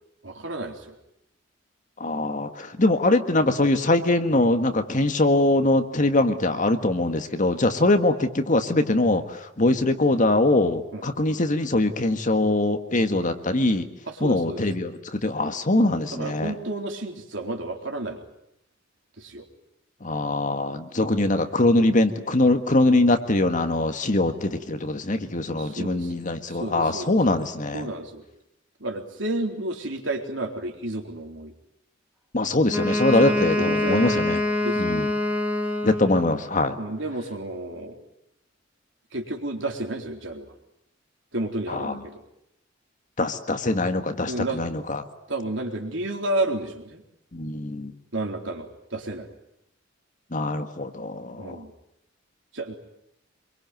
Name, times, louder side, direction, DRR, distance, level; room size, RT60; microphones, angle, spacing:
voice 1, 0.2-1.0 7.8-7.9 10.9-11.0 14.1-14.7 16.1-18.2 19.2-19.5 24.1-24.4 25.6-26.1 26.5-27.2 27.7-28.2 28.8-31.5 33.1-34.4 34.6-35.1 36.8-38.0 39.1-40.5 41.3-42.2 44.3-44.7 45.3-47.0 48.1-49.3 51.4-51.7 52.5-52.7, right 2 dB, 65° right, 3 dB, 3.9 m, -31 dB
voice 2, 2.0-13.9 14.2-16.5 20.0-27.9 32.3-34.4 34.8-35.1 35.8-36.8 41.7-41.9 43.2-45.0 47.3-47.9 50.3-51.6, left 2 dB, 40° left, 8 dB, 1.7 m, -22 dB
Wind instrument woodwind instrument, 32.7-36.4, left 1 dB, 10° right, 2.6 m, -25 dB
25.5 x 23.0 x 9.2 m, 0.80 s
head